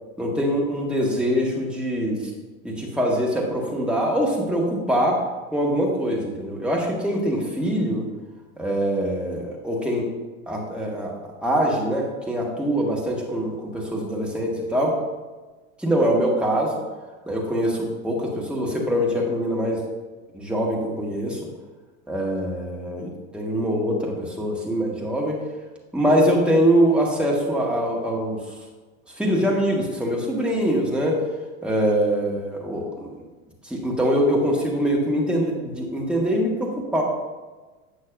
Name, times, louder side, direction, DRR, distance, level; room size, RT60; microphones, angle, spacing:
voice 1, 0.2-2.2 2.6-5.2 5.5-8.0 8.6-10.1 10.5-11.1 11.4-15.0 15.8-16.7 17.3-19.8 20.3-21.4 22.1-25.4 25.9-28.4 29.2-31.2 31.6-33.1 33.7-37.0, equal, ahead, -3 dB, 1.6 m, -23 dB
8.6 x 6.1 x 2.6 m, 1.3 s
hypercardioid pair, 90°, 42 cm